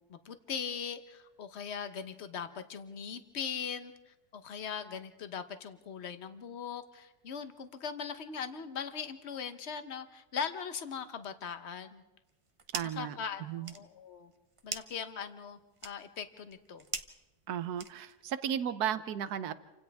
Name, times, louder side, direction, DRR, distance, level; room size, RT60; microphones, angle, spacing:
voice 1, 0.0-12.0 13.0-14.3 14.6-16.8, left 7 dB, 45° left, 9 dB, 1.2 m, -40 dB
sound 1, 12.2-13.1 13.4-18.3, right 4 dB, 30° right, 0.6 m, -44 dB
voice 2, 12.7-13.7 17.5-19.5, right 9 dB, 75° right, 12 dB, 1.4 m, -35 dB
29.5 x 25.0 x 3.5 m, 1.0 s
omnidirectional pair, 1.7 m